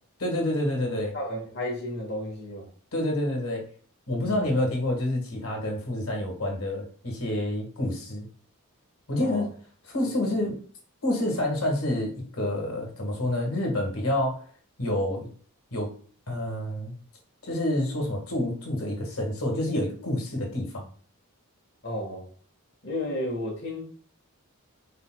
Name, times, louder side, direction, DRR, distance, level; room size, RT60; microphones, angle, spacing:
voice 1, 0.2-1.1 2.9-3.7 4.1-8.3 9.1-9.5 9.9-10.6 11.0-14.4 14.8-15.3 15.7-15.9 16.3-16.9 17.4-20.9, left 1 dB, 75° left, 1 dB, 1.6 m, -28 dB
voice 2, 1.1-2.7 4.2-4.4 9.2-9.4 10.0-10.3 21.8-22.3 22.8-23.8, left 1 dB, 50° left, -3 dB, 1.3 m, -32 dB
4.8 x 4.8 x 2.2 m, 0.44 s
head